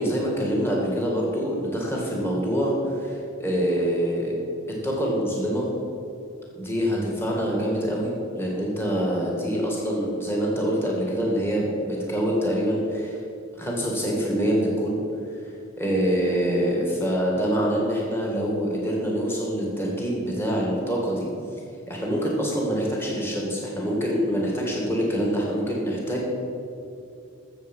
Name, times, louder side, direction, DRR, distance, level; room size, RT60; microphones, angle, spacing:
voice 1, 0.0-4.3 4.8-5.7 6.5-13.2 13.6-15.0 15.3-15.4 15.8-21.3 21.9-26.3, equal, 10° left, -3 dB, 2.2 m, -25 dB
15.0 x 7.0 x 5.5 m, 2.6 s
head